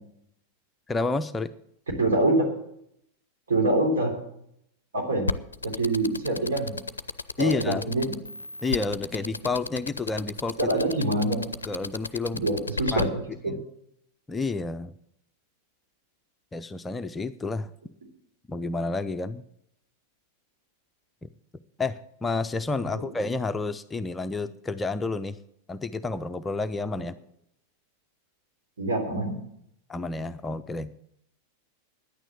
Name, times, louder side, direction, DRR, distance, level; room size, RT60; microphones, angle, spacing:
voice 1, 0.9-1.5 7.4-7.9 8.6-10.6 11.6-12.4 12.9-13.1 13.5-13.6 14.3-14.9 16.5-17.7 18.5-19.4 21.8-25.4 25.7-27.1 29.9-31.0, left 3 dB, 15° left, 10 dB, 0.5 m, -30 dB
voice 2, 2.0-2.4 3.5-4.1 4.9-5.3 5.6-6.7 7.4-8.1 10.6-11.5 12.4-13.5 28.8-29.3, right 2 dB, 65° right, 2 dB, 3.4 m, -25 dB
sound 1, 5.3-13.0, left 4 dB, 75° left, 0.4 m, -32 dB
10.0 x 9.0 x 8.2 m, 0.73 s
figure-of-eight pair, 90°, 0 cm